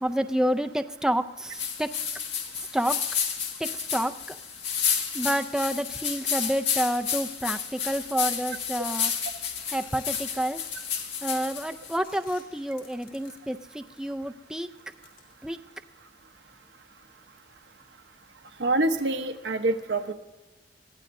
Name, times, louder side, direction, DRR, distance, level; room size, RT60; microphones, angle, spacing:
voice 1, 0.0-1.9 2.6-3.0 3.6-4.4 5.1-9.1 9.7-10.6 11.2-14.7 15.4-15.6, equal, 5° right, 7 dB, 0.4 m, -29 dB
sound 1, 1.5-12.0, left 7 dB, 90° left, 1.9 m, -31 dB
sound 2, 7.0-8.2 8.7-9.2 9.5-14.2 14.6-15.9, left 7 dB, 60° left, 4.7 m, -53 dB
voice 2, 18.6-20.1, right 2 dB, 90° right, 5 dB, 1.0 m, -26 dB
22.0 x 15.5 x 2.7 m, 1.1 s
head